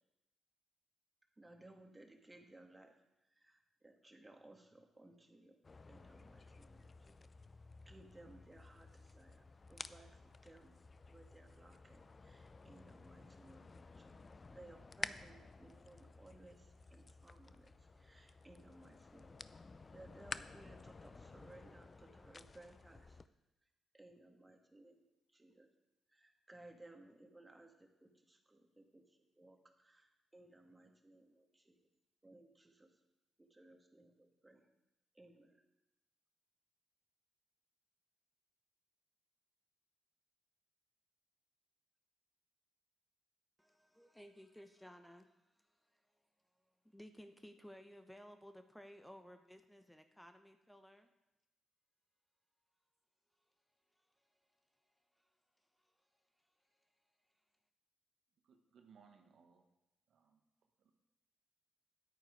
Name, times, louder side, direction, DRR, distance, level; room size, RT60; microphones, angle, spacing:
voice 1, 1.4-5.6 5.9-7.3 7.9-10.8 11.1-23.2 23.9-25.7 26.1-31.9 32.2-33.0 33.5-34.7 35.1-35.6, right 2 dB, 20° right, 3 dB, 2.0 m, -61 dB
sound 1, 5.6-23.3, left 3 dB, 35° left, 0.5 m, -53 dB
voice 2, 43.6-46.2 46.6-51.1 53.9-57.1, equal, 5° left, 7 dB, 1.0 m, -59 dB
voice 3, 58.4-59.7 60.1-60.5 60.8-60.9, right 6 dB, 65° right, 5 dB, 1.3 m, -65 dB
10.0 x 9.0 x 4.8 m, 0.97 s
hypercardioid pair, 40°, 0 cm